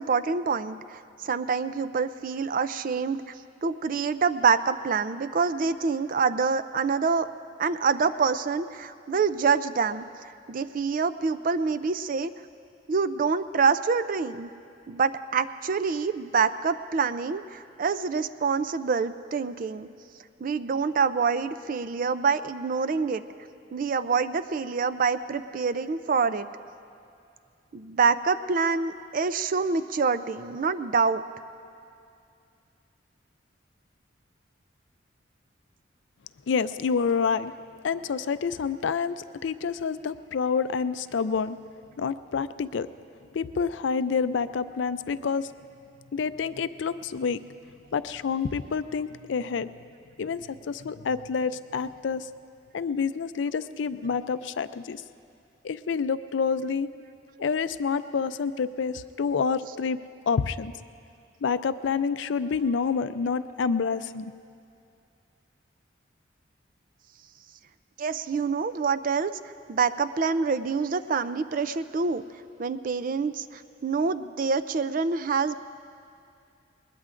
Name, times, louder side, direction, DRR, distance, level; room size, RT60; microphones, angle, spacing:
voice 1, 0.0-3.2 3.6-7.3 7.6-10.0 10.5-12.3 12.9-14.5 14.9-19.9 20.4-23.2 23.7-26.5 27.7-31.2 68.0-69.3 69.7-72.2 72.6-75.6, right 5 dB, 45° right, 12 dB, 0.4 m, -26 dB
voice 2, 36.5-37.5 37.8-41.6 42.0-42.9 43.3-45.5 46.1-47.4 47.9-49.7 50.2-52.3 52.7-55.0 55.6-56.9 57.4-60.0 60.3-60.7 61.4-64.3, left 5 dB, 75° left, 13 dB, 0.4 m, -28 dB
21.0 x 20.5 x 2.5 m, 2.5 s
head